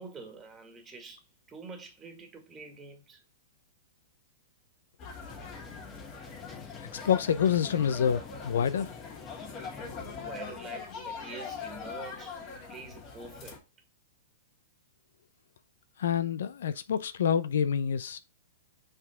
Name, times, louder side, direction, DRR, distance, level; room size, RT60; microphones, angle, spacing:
voice 1, 0.0-3.2 10.2-12.4 12.7-13.6, right 4 dB, 15° right, 1.8 m, -46 dB
sound 1, 5.0-13.6, left 5 dB, 35° left, 2.4 m, -42 dB
sound 2, 5.3-10.4, left 4 dB, 15° left, 0.9 m, -49 dB
voice 2, 7.0-8.9 16.0-18.2, left 8 dB, 80° left, 0.7 m, -27 dB
6.0 x 5.4 x 3.5 m
hypercardioid pair, 140°, 0 cm